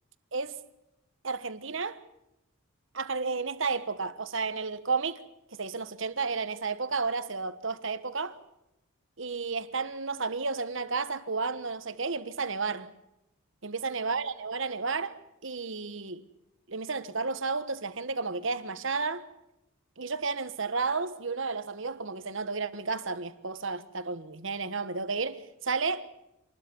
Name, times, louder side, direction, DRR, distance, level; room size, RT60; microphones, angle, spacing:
voice 1, 1.2-2.0 2.9-5.2 5.5-8.4 9.2-12.9 13.6-16.2 16.7-19.3 20.0-26.1, right 4 dB, 60° right, 1.4 m, -32 dB
26.5 x 20.5 x 7.1 m
head